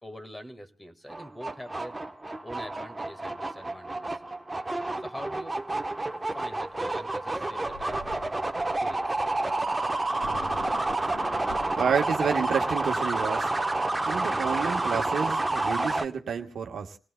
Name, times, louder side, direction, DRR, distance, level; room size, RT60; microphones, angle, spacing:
voice 1, 0.0-2.0 2.4-4.2 5.0-5.6 6.3-8.3 8.8-9.2, equal, 15° left, 8 dB, 1.6 m, -44 dB
sound 1, 1.1-16.0, right 2 dB, 20° right, 1.0 m, -29 dB
Thunder, 7.3-7.4 7.6-13.4, left 3 dB, 80° left, 7.4 m, -46 dB
voice 2, 11.8-13.5 14.0-17.0, right 7 dB, 65° right, 3 dB, 1.2 m, -29 dB
29.0 x 17.5 x 2.2 m, 0.40 s
supercardioid pair, 55°, 0 cm